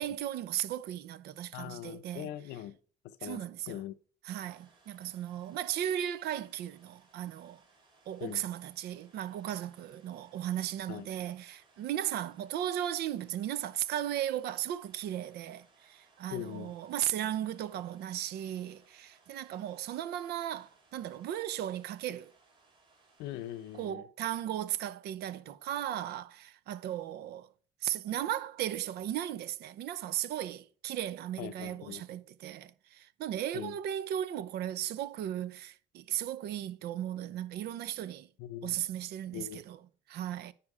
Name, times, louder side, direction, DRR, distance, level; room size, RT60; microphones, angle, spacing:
voice 1, 0.0-2.3 3.2-3.8 4.2-7.6 8.1-22.3 23.7-27.5 27.8-38.3 38.6-39.8 40.1-40.5, right 11 dB, 75° right, 0.6 m, -36 dB
voice 2, 1.5-2.8 3.0-3.9 8.2-8.4 10.9-11.1 16.3-16.7 23.2-24.1 31.4-32.0 33.5-33.8 38.4-38.8 39.3-39.6, left 12 dB, 90° left, 0.6 m, -41 dB
sound 1, 4.3-23.9, right 3 dB, 30° right, 3.1 m, -66 dB
9.7 x 4.4 x 4.8 m
cardioid pair, 110°, 17 cm